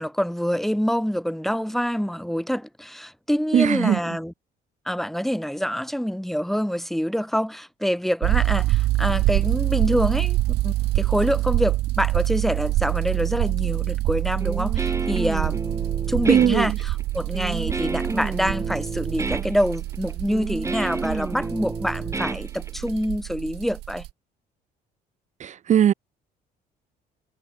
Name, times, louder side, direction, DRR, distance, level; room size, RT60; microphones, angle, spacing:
voice 1, 0.0-4.3 4.9-15.6 16.1-24.1, equal, ahead, 1.7 m, -26 dB
voice 2, 3.5-4.0 16.3-16.8 25.4-25.9, right 10 dB, 45° right, 0.8 m, -19 dB
sound 1, 8.2-24.1, right 17 dB, 80° right, 2.9 m, -26 dB
Guitar, 14.4-23.0, right 3 dB, 15° right, 7.0 m, -31 dB
cardioid pair, 110°, 17 cm